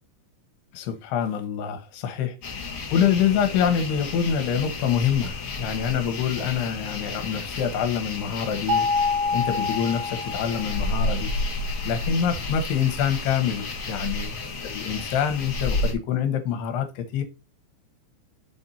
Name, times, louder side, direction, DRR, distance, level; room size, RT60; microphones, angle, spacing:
voice 1, 0.7-2.3 2.9-8.9 9.3-11.3 11.8-14.4 14.6-17.2, left 8 dB, 75° left, 3.2 m, -25 dB
sound 1, 2.4-15.9, left 2 dB, 55° left, 1.4 m, -31 dB
sound 2, 8.7-10.9, left 4 dB, 70° right, 1.3 m, -26 dB
7.3 x 4.4 x 4.2 m
omnidirectional pair, 4.9 m